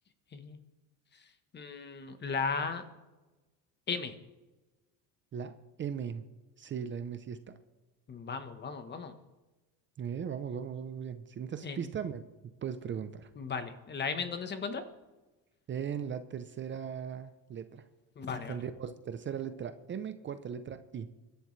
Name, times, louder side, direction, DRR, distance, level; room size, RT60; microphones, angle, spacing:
voice 1, 0.3-0.6 1.1-1.2 1.5-2.8 3.9-4.1 8.1-9.1 11.6-11.8 13.4-14.8 18.2-18.6, left 5 dB, 30° left, 9 dB, 1.1 m, -36 dB
voice 2, 5.3-6.3 6.6-7.6 10.0-13.3 15.7-17.9 18.5-21.1, right 7 dB, 30° right, 10 dB, 0.6 m, -38 dB
24.5 x 11.5 x 3.2 m, 1.2 s
cardioid pair, 145°, 38 cm